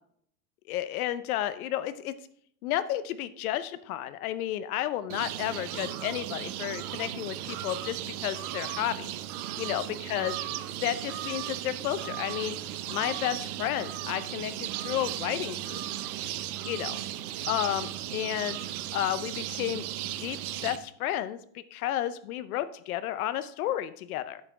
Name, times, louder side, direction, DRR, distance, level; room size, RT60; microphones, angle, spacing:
voice 1, 0.7-2.1 2.6-9.1 9.6-9.8 10.1-10.3 10.8-12.5 12.9-15.8 16.6-17.0 17.5-18.6 18.9-19.9 20.2-21.4 21.7-24.4, left 12 dB, 70° left, 13 dB, 0.7 m, -32 dB
sound 1, 5.1-20.8, right 12 dB, 70° right, 0.9 m, -36 dB
9.0 x 5.8 x 4.7 m, 0.65 s
supercardioid pair, 150°, 45 cm